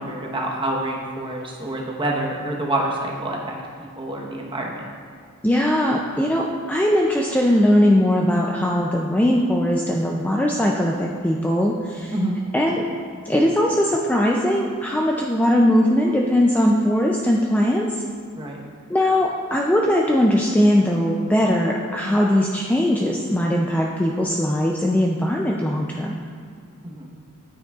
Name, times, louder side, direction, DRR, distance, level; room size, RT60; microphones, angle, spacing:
voice 1, 0.0-3.5 3.8-4.8 12.1-12.4 18.4-18.6 26.8-27.1, right 1 dB, 20° right, -1 dB, 1.0 m, -27 dB
voice 2, 5.4-12.1 12.5-12.8 13.3-18.0 18.9-26.2, left 1 dB, 5° left, -1 dB, 0.3 m, -20 dB
9.7 x 9.1 x 2.4 m, 2.3 s
head